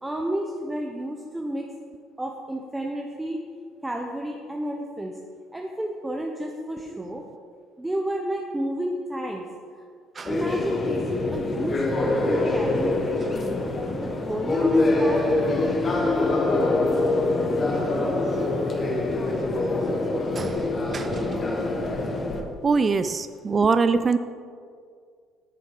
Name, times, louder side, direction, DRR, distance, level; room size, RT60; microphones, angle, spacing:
voice 1, 0.0-1.6 2.2-3.4 3.8-5.2 5.5-7.2 7.8-9.5 9.7-9.8 10.3-13.0 13.4-13.6 14.0-15.2, right 1 dB, 10° right, 1 dB, 0.8 m, -31 dB
sound 1, 10.2-22.4, left 2 dB, 40° left, 1.2 m, -24 dB
voice 2, 20.9-21.3 22.6-24.2, right 4 dB, 35° right, 12 dB, 0.3 m, -23 dB
8.4 x 6.8 x 4.8 m, 2.1 s
supercardioid pair, 75°, 0 cm